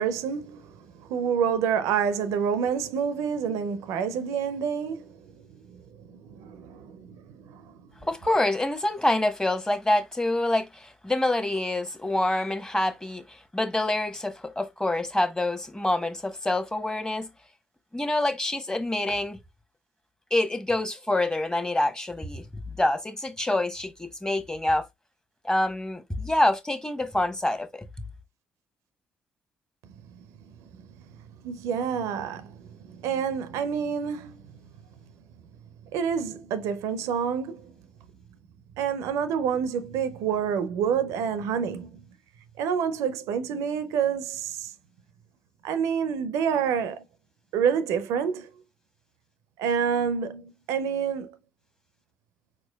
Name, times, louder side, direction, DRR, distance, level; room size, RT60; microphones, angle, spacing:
voice 1, 0.0-5.8 6.1-7.7 30.1-30.2 30.8-30.9 31.4-34.5 35.9-37.7 38.8-42.0 42.6-44.7 45.6-47.0 47.5-48.5 49.6-51.4, right 7 dB, 75° right, 0.5 m, -28 dB
voice 2, 8.0-17.3 17.9-19.4 20.3-24.9 25.4-27.9, left 1 dB, 15° left, 1.0 m, -26 dB
4.4 x 4.2 x 2.2 m
hypercardioid pair, 45°, 5 cm